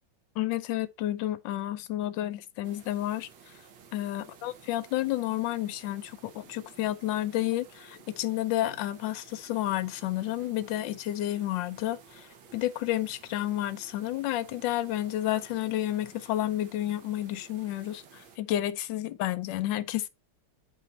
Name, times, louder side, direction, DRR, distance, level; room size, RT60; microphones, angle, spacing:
voice 1, 0.4-3.5 3.9-20.1, left 14 dB, 75° left, 1.2 m, -31 dB
sound 1, 2.6-18.4, right 6 dB, 70° right, 1.7 m, -54 dB
7.1 x 4.2 x 4.1 m
omnidirectional pair, 2.3 m